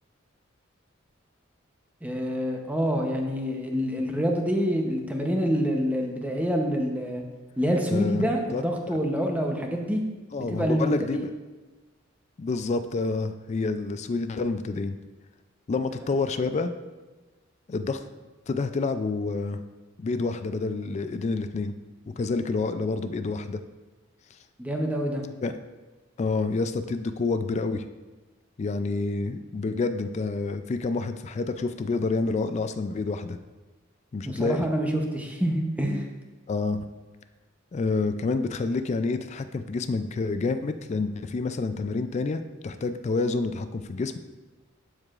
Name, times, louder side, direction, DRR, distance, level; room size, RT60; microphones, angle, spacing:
voice 1, 2.0-7.2 7.6-10.0 10.5-11.2 24.6-25.2 34.2-36.1, equal, 10° right, 2 dB, 0.8 m, -26 dB
voice 2, 7.9-8.2 8.5-8.6 10.3-11.3 12.4-15.0 15.7-16.7 17.7-18.0 18.5-19.6 20.0-21.7 22.2-23.6 25.4-25.6 26.2-27.8 28.6-33.4 34.1-34.7 36.5-36.9 37.7-44.2, left 3 dB, 35° left, 10 dB, 0.3 m, -28 dB
12.0 x 4.8 x 2.4 m, 1.2 s
head